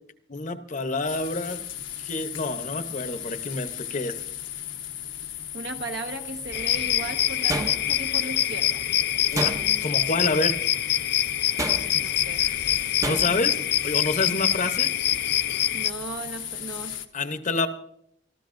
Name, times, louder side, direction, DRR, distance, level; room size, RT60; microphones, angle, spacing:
voice 1, 0.3-1.6 2.0-4.2 9.3-9.5 9.8-10.6 12.4-12.6 13.0-14.9 17.1-17.7, left 2 dB, 40° left, 9 dB, 0.9 m, -28 dB
sound 1, 1.1-17.1, left 11 dB, 85° left, 1.1 m, -36 dB
voice 2, 5.5-8.8 12.0-12.5 14.3-14.5 15.7-17.0, right 3 dB, 70° right, 4 dB, 1.3 m, -36 dB
sound 2, 6.5-15.9, left 11 dB, 60° left, 0.5 m, -25 dB
sound 3, 7.5-8.2 9.3-10.0 11.6-12.1 13.0-13.5, right 2 dB, 20° right, 0.7 m, -31 dB
25.5 x 13.5 x 2.6 m, 0.71 s
head